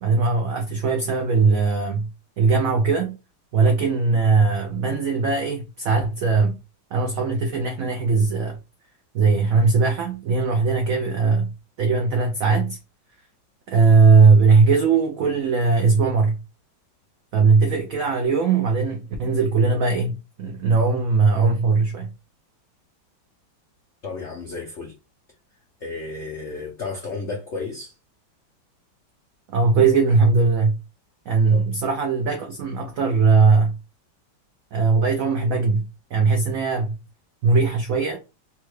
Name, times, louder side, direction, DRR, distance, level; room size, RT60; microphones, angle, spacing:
voice 1, 0.0-2.1 2.4-3.2 3.5-6.6 6.9-8.6 9.1-11.5 11.8-12.8 13.7-16.4 17.3-22.1 29.5-30.8 31.3-33.8 34.7-37.0 37.4-38.2, right 4 dB, 85° right, 0.7 m, -19 dB
voice 2, 24.0-25.0 25.8-28.0 31.5-31.6, left 3 dB, 85° left, 0.6 m, -32 dB
3.6 x 2.2 x 3.1 m
omnidirectional pair, 2.2 m